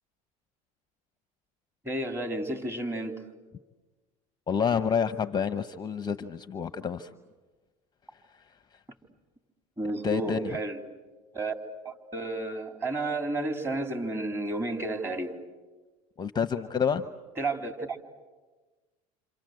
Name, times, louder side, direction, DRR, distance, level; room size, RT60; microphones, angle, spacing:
voice 1, 1.8-3.2 9.8-10.8 11.3-11.5 11.9-15.4 17.4-18.0, right 2 dB, 15° right, 4 dB, 3.5 m, -31 dB
voice 2, 4.5-7.1 10.0-10.6 16.2-17.1, left 6 dB, 20° left, 10 dB, 0.9 m, -28 dB
28.0 x 27.0 x 7.8 m, 1.3 s
supercardioid pair, 100°, 19 cm